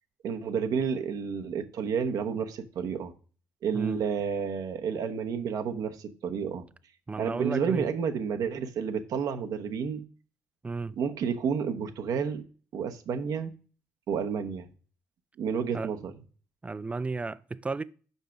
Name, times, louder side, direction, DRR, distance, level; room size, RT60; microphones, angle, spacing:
voice 1, 0.2-3.1 3.6-6.6 7.2-10.0 11.0-12.4 12.7-13.5 14.1-14.7 15.4-16.0, right 6 dB, 65° right, 1.0 m, -30 dB
voice 2, 3.7-4.0 7.1-7.9 10.6-10.9 15.7-15.9 16.6-17.8, right 3 dB, 20° right, 0.5 m, -33 dB
5.5 x 5.0 x 5.9 m
supercardioid pair, 65°, 7 cm